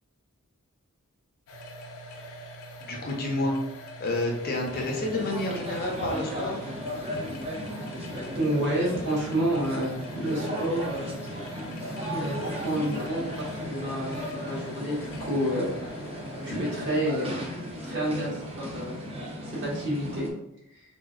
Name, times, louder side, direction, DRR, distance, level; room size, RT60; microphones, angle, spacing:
sound 1, 1.5-20.2, equal, 80° left, 0.7 m, -44 dB
voice 1, 2.8-3.6 4.0-6.6, left 2 dB, 45° left, 0 dB, 0.6 m, -29 dB
sound 2, 4.7-20.3, equal, 25° right, 0.6 m, -36 dB
voice 2, 8.3-11.2 12.1-15.7 16.4-17.3 17.8-19.0 19.5-20.3, right 1 dB, 55° right, -6 dB, 1.5 m, -29 dB
3.6 x 2.5 x 2.4 m, 0.81 s
head